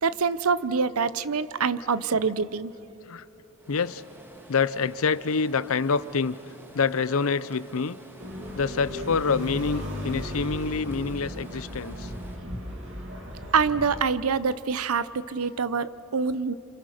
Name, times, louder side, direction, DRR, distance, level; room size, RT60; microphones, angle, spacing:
voice 1, 0.0-2.7 13.5-16.5, right 5 dB, 80° right, 15 dB, 0.8 m, -25 dB
Stream, 3.6-12.4, right 1 dB, 10° right, 1.9 m, -49 dB
voice 2, 3.7-4.0 4.5-6.4 6.7-8.0 8.5-12.1, left 5 dB, 70° left, 17 dB, 0.6 m, -26 dB
sound 1, 8.2-14.0, left 1 dB, 55° right, 2.6 m, -36 dB
30.0 x 27.0 x 6.6 m, 2.9 s
head